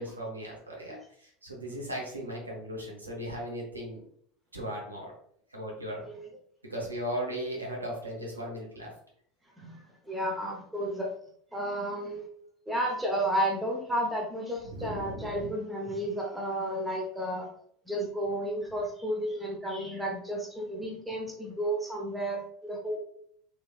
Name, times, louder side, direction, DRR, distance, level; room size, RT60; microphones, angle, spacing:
voice 1, 0.0-4.0 4.5-5.1 5.5-6.1 6.7-8.9 14.7-15.5, equal, 85° right, -2 dB, 0.9 m, -37 dB
voice 2, 10.1-11.1 11.5-12.3 12.7-17.5 17.9-23.0, right 1 dB, 5° right, -1 dB, 0.8 m, -32 dB
3.3 x 3.0 x 2.3 m, 0.63 s
figure-of-eight pair, 70°, 0 cm